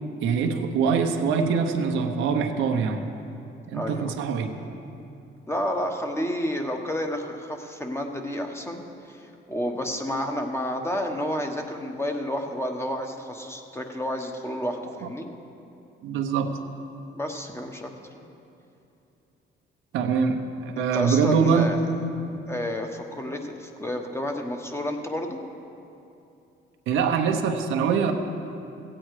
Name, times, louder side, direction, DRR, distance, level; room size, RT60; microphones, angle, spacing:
voice 1, 0.2-3.0 3.7-4.5 16.0-16.5 19.9-21.7 26.9-28.1, right 6 dB, 90° right, 5 dB, 0.9 m, -23 dB
voice 2, 3.7-4.1 5.5-15.3 17.1-17.9 20.7-21.8 22.5-25.4, equal, 15° left, 3 dB, 1.2 m, -30 dB
16.0 x 8.8 x 4.8 m, 2.8 s
cardioid pair, 90°, 20 cm